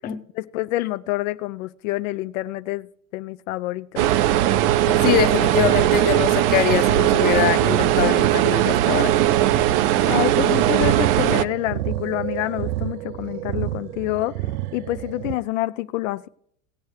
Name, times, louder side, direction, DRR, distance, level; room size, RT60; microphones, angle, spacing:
voice 1, 0.3-2.9 3.1-4.1 10.1-14.4 14.7-16.3, left 17 dB, 65° left, 0.5 m, -27 dB
sound 1, 4.0-11.4, right 13 dB, 45° right, 0.5 m, -19 dB
voice 2, 4.9-9.2, left 10 dB, 20° left, 0.8 m, -23 dB
sound 2, 9.9-15.3, right 14 dB, 90° right, 0.6 m, -32 dB
18.5 x 8.1 x 3.2 m
supercardioid pair, 155°, 41 cm